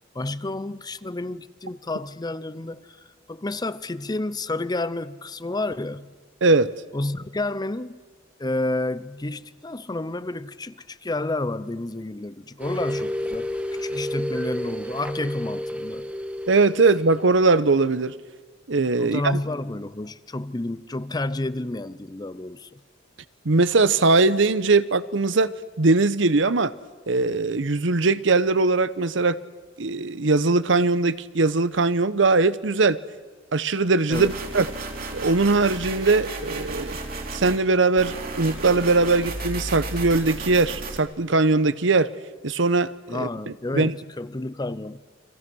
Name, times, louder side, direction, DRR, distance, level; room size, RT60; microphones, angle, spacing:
voice 1, 0.1-6.1 6.9-8.0 8.4-13.5 13.8-16.1 19.0-22.8 34.1-34.4 43.1-45.0, left 2 dB, 20° left, 0.7 m, -30 dB
sound 1, 12.6-17.5, left 1 dB, 5° right, 1.3 m, -31 dB
voice 2, 16.5-18.1 18.7-19.2 23.4-25.5 25.8-26.7 27.1-29.4 29.8-33.0 33.5-34.7 35.1-37.0 37.3-42.1 42.4-43.3 43.7-43.9, right 3 dB, 75° right, 0.9 m, -20 dB
sound 2, 34.1-37.6 38.0-41.0, right 2 dB, 50° right, 3.2 m, -33 dB
30.0 x 24.0 x 6.3 m
head